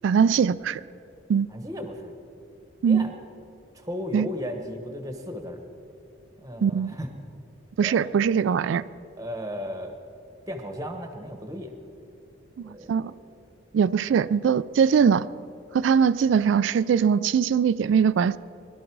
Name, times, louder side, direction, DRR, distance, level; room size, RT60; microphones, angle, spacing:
voice 1, 0.0-0.8 1.3-1.5 2.8-3.1 4.1-4.3 6.6-7.0 7.8-8.8 12.6-13.1 13.7-15.3 15.7-18.4, right 7 dB, 75° right, 16 dB, 0.3 m, -21 dB
voice 2, 1.5-2.1 2.9-3.1 3.7-5.6 6.4-7.1 7.8-8.1 9.2-10.0 10.5-11.7 12.6-13.2, equal, 15° right, 5 dB, 1.1 m, -35 dB
21.5 x 12.0 x 4.6 m, 2.7 s
head